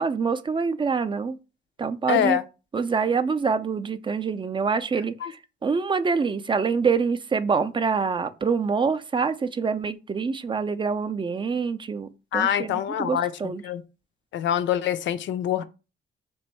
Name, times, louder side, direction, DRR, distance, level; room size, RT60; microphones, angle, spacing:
voice 1, 0.0-1.4 1.8-2.4 2.7-13.6, right 5 dB, 25° right, 0.4 m, -26 dB
voice 2, 2.1-2.4 5.2-5.3 12.3-13.8 14.3-15.6, left 10 dB, 70° left, 0.5 m, -25 dB
3.0 x 2.6 x 4.4 m
cardioid pair, 90°, 20 cm